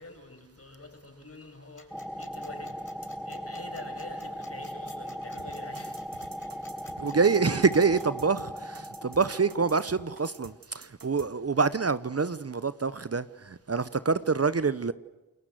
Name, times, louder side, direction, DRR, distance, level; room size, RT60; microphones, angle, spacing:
voice 1, 0.0-1.9 2.2-2.8 3.2-6.0, left 2 dB, 45° left, 4 dB, 6.6 m, -46 dB
sound 1, 1.8-8.0, left 3 dB, 60° left, 6.4 m, -53 dB
sound 2, 1.9-10.5, equal, ahead, 1.5 m, -39 dB
sound 3, 5.4-11.3, right 5 dB, 80° right, 1.9 m, -49 dB
voice 2, 7.0-14.9, right 4 dB, 45° right, 15 dB, 0.9 m, -26 dB
29.0 x 22.5 x 7.8 m, 1.1 s
cardioid pair, 50°, 34 cm